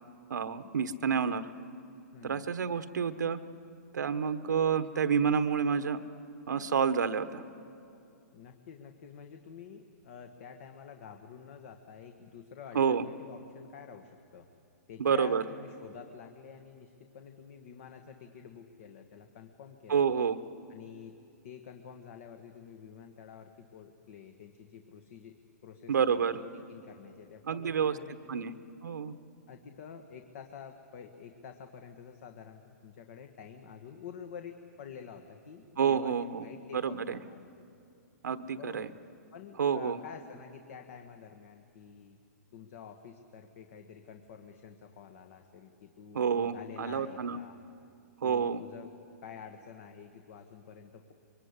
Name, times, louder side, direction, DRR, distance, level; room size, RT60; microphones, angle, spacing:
voice 1, 0.3-1.5 2.2-3.4 3.9-6.0 6.5-7.4 12.7-13.0 15.0-15.4 19.9-20.4 25.9-26.4 27.5-28.0 28.3-28.5 28.8-29.1 35.8-36.4 36.7-37.2 38.2-38.9 39.6-40.0 46.1-47.4 48.2-48.6, right 6 dB, 90° right, 10 dB, 1.3 m, -29 dB
voice 2, 2.1-2.5 8.3-14.5 14.9-20.1 20.7-21.1 21.4-25.4 25.6-28.5 29.5-37.5 38.5-38.9 39.3-42.2 42.5-47.6 48.2-48.9 49.2-51.1, left 7 dB, 50° left, 6 dB, 1.6 m, -49 dB
24.0 x 23.5 x 9.8 m, 2.5 s
hypercardioid pair, 155°, 9 cm